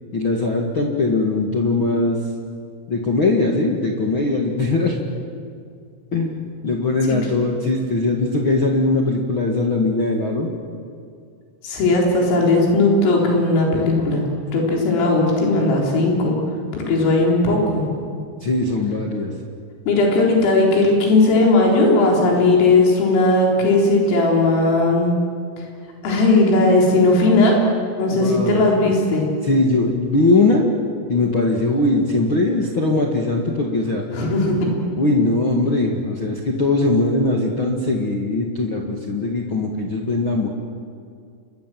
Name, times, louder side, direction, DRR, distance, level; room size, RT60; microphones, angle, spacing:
voice 1, 0.1-2.2 2.9-5.2 6.1-10.5 18.4-19.3 28.1-28.6 29.4-30.6 31.1-34.0 35.0-40.5, left 2 dB, 50° left, -2 dB, 1.5 m, -20 dB
voice 2, 11.6-14.2 14.5-16.3 16.7-17.9 19.9-25.1 26.0-27.6 28.0-29.3 34.1-34.7, left 2 dB, 90° left, -2 dB, 6.6 m, -17 dB
29.0 x 23.0 x 7.7 m, 2.3 s
omnidirectional pair, 5.7 m